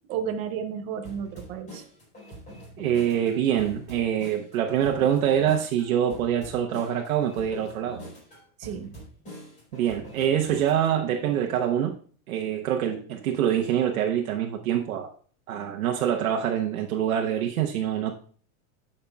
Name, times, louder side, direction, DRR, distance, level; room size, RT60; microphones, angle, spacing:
voice 1, 0.1-1.8 8.6-8.9, right 8 dB, 15° right, 5 dB, 0.4 m, -32 dB
sound 1, 1.0-11.0, right 1 dB, 20° left, 4.4 m, -44 dB
voice 2, 2.8-8.0 9.7-11.9 12.3-15.1 15.5-18.1, right 9 dB, 85° right, 2 dB, 1.1 m, -25 dB
15.5 x 5.6 x 2.3 m, 0.43 s
supercardioid pair, 165°, 41 cm